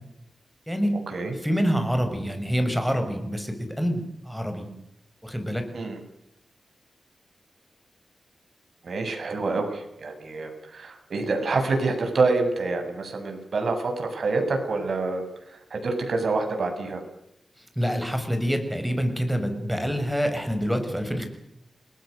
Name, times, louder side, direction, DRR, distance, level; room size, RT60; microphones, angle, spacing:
voice 1, 1.4-4.7 5.2-5.6 17.8-21.3, equal, ahead, 6 dB, 6.2 m, -26 dB
voice 2, 8.8-15.2 15.5-17.0, right 3 dB, 60° right, 5 dB, 7.6 m, -27 dB
30.0 x 20.5 x 6.8 m, 0.83 s
wide cardioid pair, 115°, 0 cm